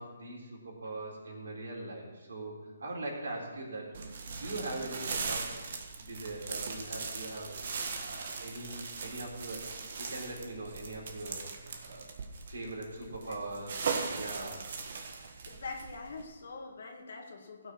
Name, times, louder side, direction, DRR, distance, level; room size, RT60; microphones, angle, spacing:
voice 1, 0.0-5.6 6.0-9.7 10.0-11.4 11.8-12.0 12.5-14.7, right 2 dB, 75° right, -2 dB, 4.1 m, -41 dB
sound 1, 3.9-16.2, right 5 dB, 55° right, 1.5 m, -39 dB
voice 2, 15.5-17.7, left 4 dB, 65° left, 2 dB, 1.8 m, -44 dB
16.0 x 6.2 x 6.3 m, 1.2 s
hypercardioid pair, 150°, 0 cm